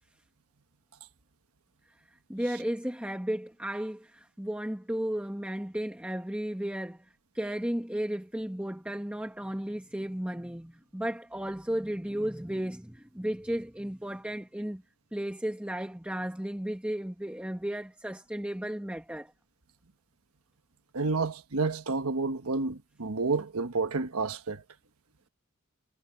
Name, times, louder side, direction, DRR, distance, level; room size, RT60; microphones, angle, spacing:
voice 1, 2.3-7.0 7.3-14.8 15.1-19.3, right 1 dB, 5° right, 1.1 m, -34 dB
voice 2, 20.9-24.6, right 3 dB, 80° right, 1.3 m, -30 dB
head